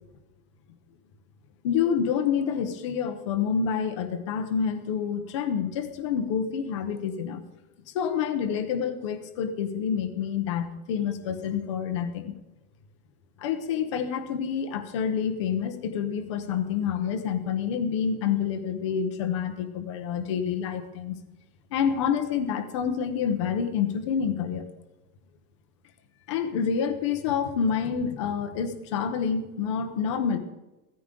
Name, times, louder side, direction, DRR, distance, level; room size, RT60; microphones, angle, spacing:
voice 1, 1.6-7.4 7.9-12.3 13.4-21.2 21.7-24.7 26.3-30.4, left 7 dB, 20° left, 9 dB, 0.6 m, -28 dB
16.5 x 13.5 x 3.8 m, 1.0 s
supercardioid pair, 175°, 47 cm